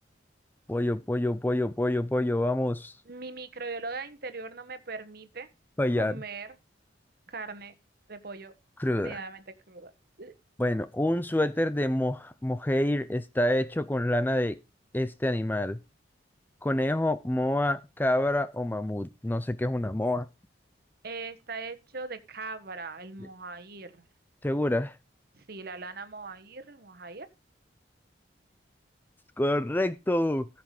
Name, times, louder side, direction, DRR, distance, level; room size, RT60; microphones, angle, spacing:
voice 1, 0.7-3.0 5.8-6.1 8.8-9.2 10.6-14.6 14.9-15.8 16.6-20.3 24.4-25.0 29.4-30.5, left 1 dB, 10° left, 0.5 m, -27 dB
voice 2, 3.0-5.5 6.0-6.5 7.3-7.7 8.1-8.5 9.0-9.9 10.2-10.3 21.0-23.9 25.3-27.3, right 3 dB, 55° right, 1.3 m, -40 dB
14.5 x 5.9 x 4.9 m
head